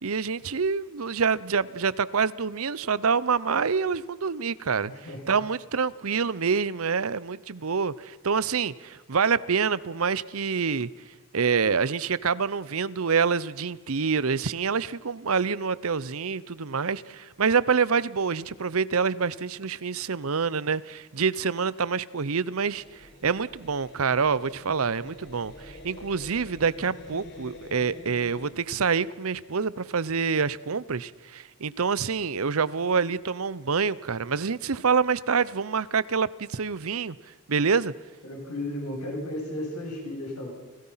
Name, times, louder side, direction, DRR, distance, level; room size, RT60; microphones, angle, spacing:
voice 1, 0.0-4.9 5.3-10.9 11.3-37.2 37.5-37.9, right 5 dB, 70° right, 0.7 m, -26 dB
voice 2, 4.8-5.4 38.2-40.5, left 1 dB, 80° left, 7.7 m, -34 dB
sound 1, 22.7-28.5, left 1 dB, 50° left, 4.6 m, -46 dB
29.5 x 18.0 x 5.7 m
head